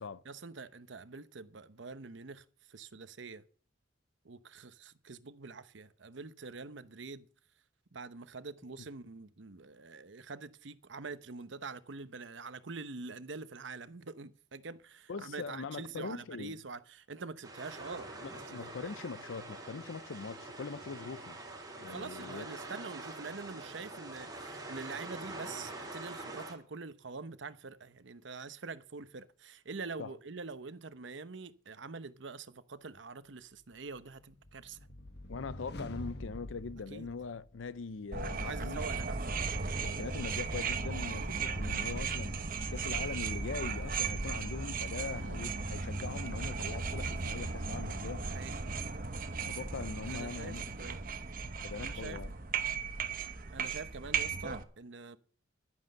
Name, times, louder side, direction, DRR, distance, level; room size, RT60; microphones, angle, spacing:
voice 1, 0.2-3.4 4.2-7.3 7.9-18.4 18.8-18.9 21.9-34.8 36.9-37.1 38.4-39.2 41.1-41.4 45.1-45.5 48.2-48.5 50.1-51.1 51.8-52.2 53.5-55.2, right 4 dB, 75° right, 0.9 m, -45 dB
voice 2, 15.1-16.5 18.2-21.4 21.8-22.5 30.0-30.1 35.3-38.8 39.8-42.3 42.7-48.2 49.4-50.6 51.6-52.3, left 4 dB, 80° left, 0.5 m, -42 dB
sound 1, 17.4-26.5, right 2 dB, 20° right, 3.8 m, -45 dB
sound 2, 33.9-37.8, left 1 dB, 55° left, 1.2 m, -46 dB
sound 3, 38.1-54.6, right 4 dB, 45° right, 1.1 m, -36 dB
11.5 x 9.6 x 6.6 m
head